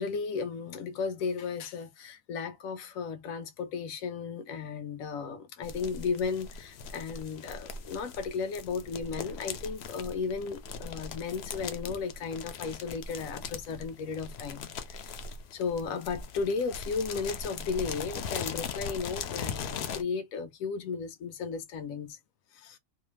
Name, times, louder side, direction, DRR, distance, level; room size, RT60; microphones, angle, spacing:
voice 1, 0.0-15.2 15.5-22.2 22.5-22.8, left 5 dB, 85° left, 1.0 m, -35 dB
sound 1, 5.6-20.0, left 5 dB, 65° left, 0.7 m, -40 dB
2.7 x 2.2 x 3.0 m
omnidirectional pair, 1.4 m